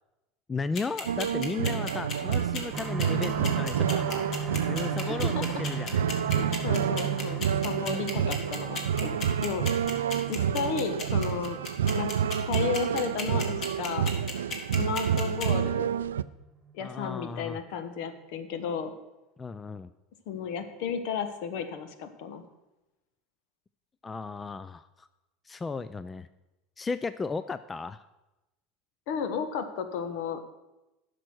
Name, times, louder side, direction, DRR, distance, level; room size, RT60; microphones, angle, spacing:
voice 1, 0.5-4.2 4.7-6.0 16.8-17.6 19.4-19.9 24.0-25.1 25.5-26.3 26.8-28.0, left 4 dB, 20° left, 14 dB, 0.4 m, -35 dB
sound 1, 0.8-15.5, left 4 dB, 45° left, 2.0 m, -35 dB
sound 2, 1.1-16.2, right 8 dB, 85° right, 0.3 m, -29 dB
sound 3, 2.7-16.2 16.7-16.8 17.2-17.3, right 6 dB, 25° right, 1.5 m, -38 dB
voice 2, 5.0-5.4 6.3-9.7 10.3-11.6 11.9-12.1 12.4-14.1 14.8-15.9 16.7-18.9 20.3-22.4 29.1-30.4, left 7 dB, 65° left, 9 dB, 1.1 m, -33 dB
10.5 x 6.5 x 6.2 m, 1.0 s
hypercardioid pair, 85°, 0 cm